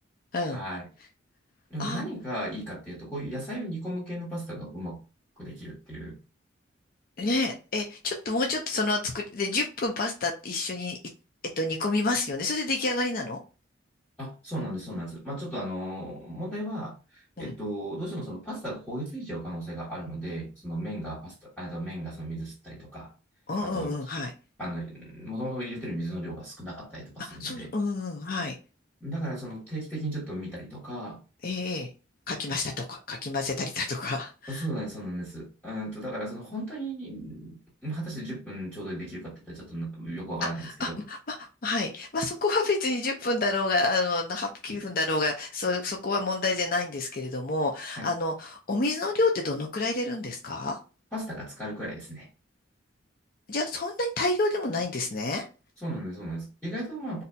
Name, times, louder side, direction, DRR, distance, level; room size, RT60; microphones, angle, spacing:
voice 1, 0.5-0.9 1.7-5.0 5.4-6.2 14.2-23.1 23.6-24.0 24.6-27.7 29.0-31.2 34.5-41.0 44.7-44.8 48.0-48.1 51.1-52.3 55.8-57.2, right 1 dB, 10° left, 1.2 m, -36 dB
voice 2, 7.2-11.0 11.6-13.4 17.4-17.5 23.5-24.3 27.3-28.6 31.4-31.9 32.3-34.7 40.4-50.8 53.5-55.4, left 3 dB, 45° left, 0.6 m, -29 dB
4.0 x 2.7 x 2.2 m
head